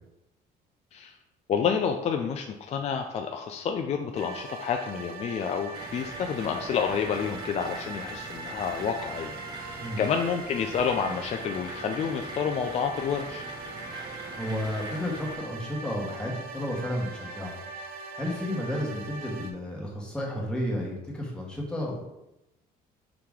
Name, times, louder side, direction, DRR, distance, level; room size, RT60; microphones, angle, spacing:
voice 1, 1.5-13.4, left 7 dB, 40° left, 4 dB, 0.4 m, -29 dB
sound 1, 4.2-19.5, right 4 dB, 65° right, 0.6 m, -41 dB
sound 2, 5.7-15.4, right 1 dB, 25° right, 0.8 m, -42 dB
voice 2, 14.4-17.6 18.1-22.1, left 1 dB, 5° left, -4 dB, 1.3 m, -32 dB
4.8 x 2.9 x 3.6 m, 0.89 s
cardioid pair, 110°, 17 cm